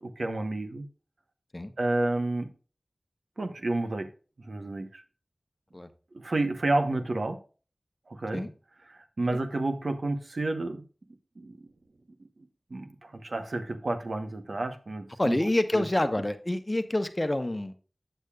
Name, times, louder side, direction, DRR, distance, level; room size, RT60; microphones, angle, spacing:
voice 1, 0.0-0.9 1.8-2.5 3.4-4.1 4.4-5.0 6.1-7.4 8.1-8.4 8.9-10.8 11.4-11.7 12.7-15.4 15.7-15.8, right 2 dB, 80° right, 7 dB, 1.0 m, -30 dB
voice 2, 15.2-17.8, left 1 dB, 30° left, 9 dB, 1.0 m, -27 dB
8.3 x 8.0 x 2.3 m, 0.36 s
wide cardioid pair, 50°, 0 cm